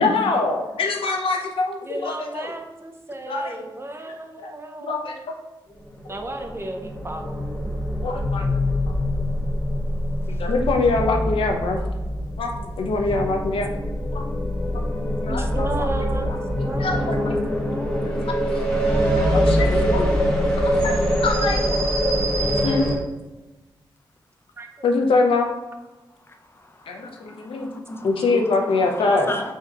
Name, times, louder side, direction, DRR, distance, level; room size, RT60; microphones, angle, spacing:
voice 1, 0.0-2.5 3.3-3.5 4.4-4.5 4.8-5.3 8.0-8.6 10.3-11.8 12.4-13.7 14.1-14.3 14.7-14.9 15.2-15.9 16.3-17.5 18.0-18.2 18.5-18.6 19.3-20.2 20.6-21.7 22.0-22.9 24.8-25.5 26.9-27.7 28.0-29.3, left 3 dB, 90° left, 2 dB, 0.6 m, -24 dB
voice 2, 1.8-5.0 6.1-7.7 15.3-17.4 17.7-18.1 18.8-20.3 24.6-24.7, right 2 dB, 30° right, 4 dB, 0.7 m, -34 dB
sound 1, 6.1-23.0, equal, 10° left, 1.2 m, -24 dB
voice 3, 26.3-29.5, left 1 dB, 25° left, 5 dB, 0.6 m, -34 dB
3.6 x 2.8 x 4.5 m, 1.1 s
cardioid pair, 60°, 9 cm